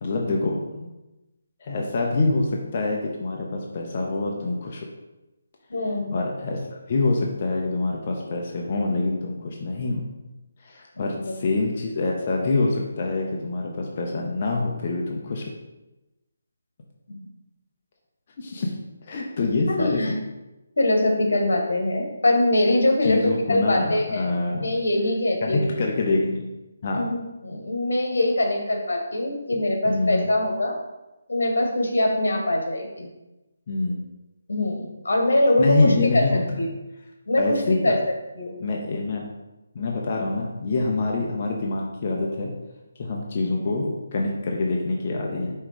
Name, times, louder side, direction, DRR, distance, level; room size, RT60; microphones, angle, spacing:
voice 1, 0.0-0.9 1.6-4.9 6.1-10.0 10.6-15.5 18.4-18.8 19.1-20.0 23.0-24.7 25.4-26.4 26.8-27.1 29.8-30.3 33.7-34.0 35.6-36.7 37.4-37.9 38.6-39.3 39.7-42.5 43.0-45.5, left 3 dB, 35° left, -1 dB, 0.7 m, -25 dB
voice 2, 5.7-6.1 11.0-11.3 17.1-17.3 19.7-20.1 20.8-24.3 24.6-25.7 26.9-30.8 31.3-33.1 34.5-36.7 37.3-38.0 38.4-38.6, left 1 dB, 85° left, 2 dB, 1.7 m, -23 dB
5.5 x 3.7 x 5.0 m, 1.0 s
hypercardioid pair, 170°, 0 cm